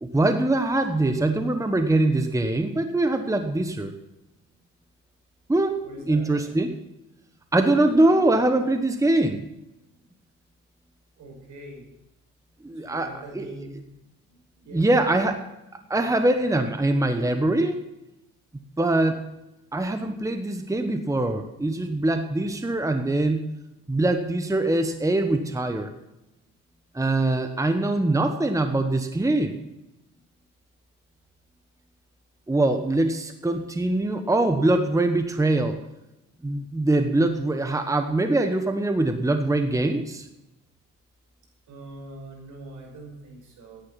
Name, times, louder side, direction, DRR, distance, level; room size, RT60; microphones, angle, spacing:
voice 1, 0.0-3.9 5.5-5.8 6.1-6.7 7.5-9.5 12.6-13.1 13.3-13.5 14.7-15.4 15.9-17.8 18.8-19.2 19.7-23.5 23.9-25.9 26.9-29.6 32.5-35.8 36.4-40.3, right 2 dB, 10° right, 7 dB, 1.2 m, -23 dB
voice 2, 5.8-6.6 11.2-11.9 12.8-13.8 14.5-15.1 15.8-15.9 19.7-19.8 41.7-43.8, right 2 dB, 75° right, 1 dB, 5.8 m, -42 dB
15.5 x 10.5 x 5.8 m, 0.91 s
cardioid pair, 90°, 30 cm